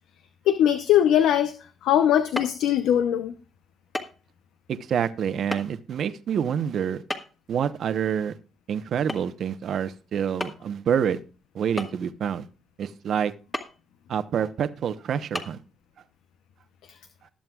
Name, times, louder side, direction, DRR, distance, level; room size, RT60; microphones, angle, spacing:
voice 1, 0.5-1.5 1.8-3.3, left 10 dB, 85° left, 10 dB, 0.7 m, -20 dB
sound 1, 2.3-2.6 3.9-4.2 4.5-4.6 5.5-5.6 7.1-7.5 9.1-9.3 9.7-9.8 10.4-10.7 11.8-12.3 13.5-13.8 14.3-14.4 15.3-15.4, left 1 dB, 15° left, 1.6 m, -32 dB
voice 2, 4.7-7.0 7.5-8.3 8.7-11.2 11.5-12.5 12.8-13.3 14.1-15.6, right 8 dB, 65° right, 12 dB, 0.9 m, -27 dB
20.0 x 7.6 x 2.4 m, 0.35 s
cardioid pair, 90°, 0 cm